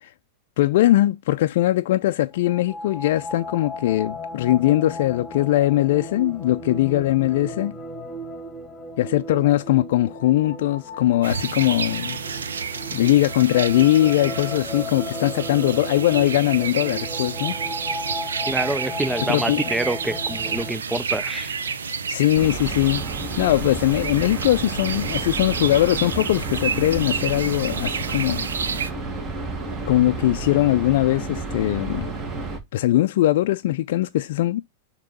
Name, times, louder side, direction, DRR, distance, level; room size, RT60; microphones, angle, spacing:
voice 1, 0.6-7.8 9.0-12.2 12.9-17.6 19.2-19.6 22.1-23.0 23.4-28.5 29.9-32.1 32.7-34.6, left 14 dB, 65° left, 0.4 m, -20 dB
sound 1, 2.3-20.7, left 1 dB, 15° left, 1.4 m, -36 dB
sound 2, 11.2-28.9, right 6 dB, 90° right, 0.7 m, -30 dB
voice 2, 18.5-21.6, right 2 dB, 5° right, 0.4 m, -27 dB
sound 3, 22.3-32.6, right 3 dB, 30° right, 1.9 m, -31 dB
6.7 x 3.0 x 5.2 m
hypercardioid pair, 115°, 0 cm